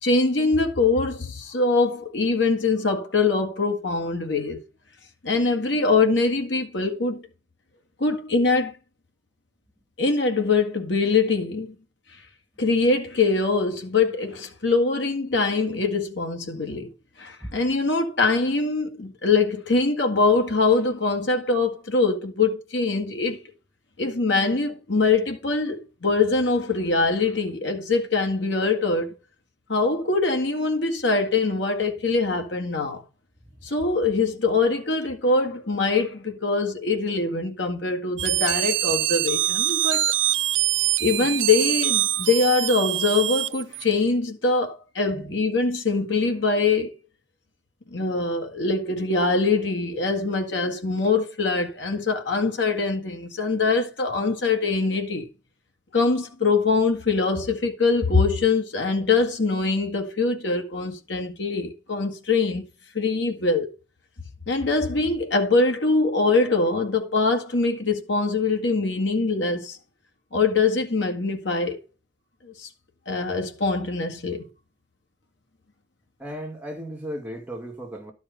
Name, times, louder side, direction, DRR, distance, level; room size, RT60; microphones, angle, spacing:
voice 1, 0.0-4.6 5.2-7.2 8.0-8.7 10.0-11.8 12.6-16.9 17.2-23.4 24.0-29.1 29.7-33.0 33.6-40.1 40.8-46.9 47.9-55.3 55.9-62.7 62.9-63.7 64.5-69.8 70.3-71.8 72.4-72.7 73.1-74.5, left 3 dB, 60° left, 1.7 m, -23 dB
sound 1, 38.2-43.9, right 15 dB, 65° right, 0.5 m, -24 dB
voice 2, 76.2-78.1, equal, 5° right, 2.5 m, -35 dB
12.0 x 5.1 x 5.5 m
head